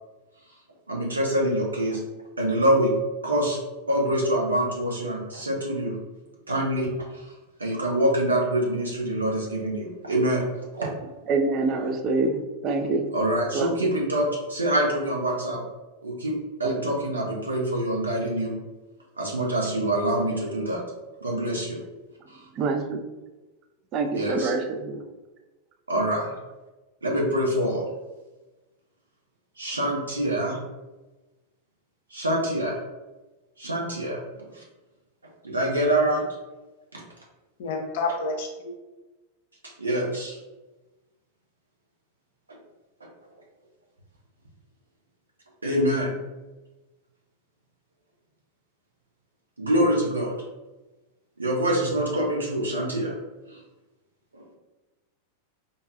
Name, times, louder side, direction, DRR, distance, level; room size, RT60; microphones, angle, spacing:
voice 1, 0.9-2.0 2.4-2.9 3.2-3.6 3.9-6.0 6.5-7.3 7.6-10.5 10.8-10.9 13.1-15.6 16.0-16.3 16.6-18.5 19.2-20.8 21.2-21.8 22.3-22.4 24.1-24.5 25.9-26.3 27.0-27.9 29.6-30.6 32.1-32.8 33.6-34.2 34.5-34.6 35.4-36.2 36.9-37.0 39.8-40.4 45.6-46.1 49.6-50.3 51.4-53.1 53.5-53.6 54.3-54.4, right 1 dB, 80° right, -2 dB, 0.7 m, -25 dB
voice 2, 11.3-13.1 13.5-13.9 16.6-16.7 22.6-23.0 23.9-25.0, right 3 dB, 35° right, 5 dB, 0.4 m, -26 dB
voice 3, 37.6-38.7, left 3 dB, 55° left, 3 dB, 0.5 m, -29 dB
3.9 x 2.2 x 2.5 m, 1.1 s
figure-of-eight pair, 90°, 0 cm